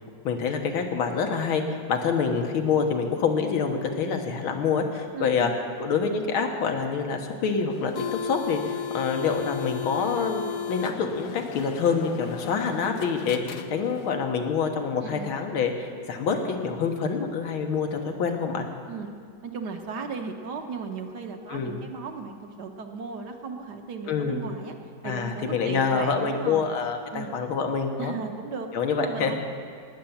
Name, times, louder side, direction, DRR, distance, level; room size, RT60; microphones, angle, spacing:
voice 1, 0.2-1.6 1.9-5.5 5.8-10.4 10.7-13.4 13.7-18.7 21.5-21.8 24.1-24.4 25.0-28.1 28.7-29.3, left 5 dB, 90° left, 4 dB, 2.1 m, -26 dB
voice 2, 5.1-5.5 12.4-12.8 15.0-15.3 18.9-19.1 19.4-24.7 25.0-26.7 27.1-27.3 28.0-28.7 29.0-29.3, right 5 dB, 60° right, 4 dB, 1.5 m, -36 dB
sound 1, 7.7-14.2, left 8 dB, 70° left, 0.7 m, -35 dB
19.5 x 8.1 x 7.3 m, 2.2 s
omnidirectional pair, 2.2 m